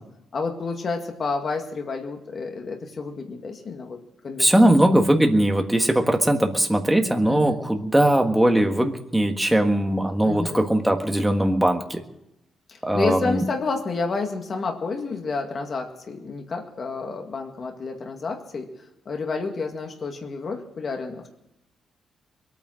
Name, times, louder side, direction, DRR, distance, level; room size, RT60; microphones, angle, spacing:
voice 1, 0.3-4.0 4.2-4.7 7.3-7.6 10.2-10.7 12.7-18.7 19.1-21.3, left 4 dB, 40° left, 3 dB, 2.0 m, -30 dB
voice 2, 4.4-12.0 12.8-13.4, right 1 dB, 5° right, 4 dB, 1.5 m, -20 dB
23.0 x 9.3 x 6.4 m, 0.83 s
cardioid pair, 150°, 0 cm